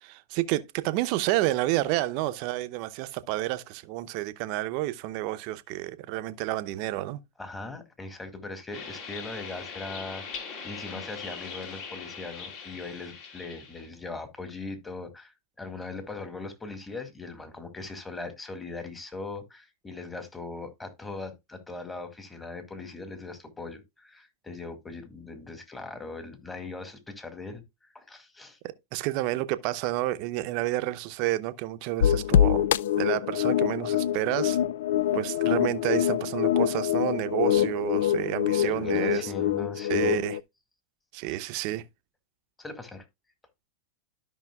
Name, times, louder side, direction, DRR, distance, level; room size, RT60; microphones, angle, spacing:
voice 1, 0.0-7.2 28.9-32.6 33.0-34.6 35.1-39.3 39.9-40.4 41.1-41.8, right 16 dB, 55° right, 0.7 m, -30 dB
voice 2, 7.4-10.2 10.6-27.6 27.9-28.6 38.6-40.3 41.2-41.5 42.6-43.1, left 3 dB, 15° left, 2.0 m, -40 dB
sound 1, 8.7-13.9, left 6 dB, 50° left, 3.0 m, -41 dB
sound 2, 32.0-40.4, left 10 dB, 75° left, 0.3 m, -25 dB
13.0 x 5.5 x 2.3 m
hypercardioid pair, 105°, 0 cm